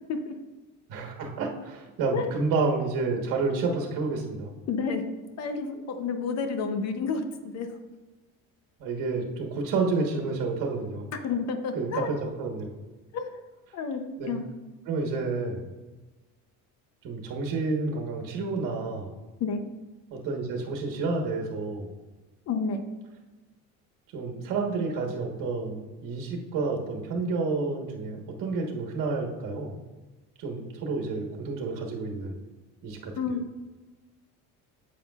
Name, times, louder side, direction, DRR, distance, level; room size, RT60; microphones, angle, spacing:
voice 1, 0.9-4.5 8.8-11.0 11.7-12.7 14.2-14.3 14.9-15.7 17.0-19.2 20.1-21.9 24.1-29.8 30.4-32.4 32.8-33.4, right 3 dB, 60° right, 1 dB, 1.3 m, -30 dB
voice 2, 4.7-5.0 5.4-7.7 11.2-12.1 13.1-13.4 13.7-14.4 19.4-19.6 22.5-22.8 33.2-33.4, left 5 dB, 50° left, 7 dB, 0.7 m, -30 dB
9.4 x 7.1 x 2.4 m, 1.2 s
cardioid pair, 145°, 35 cm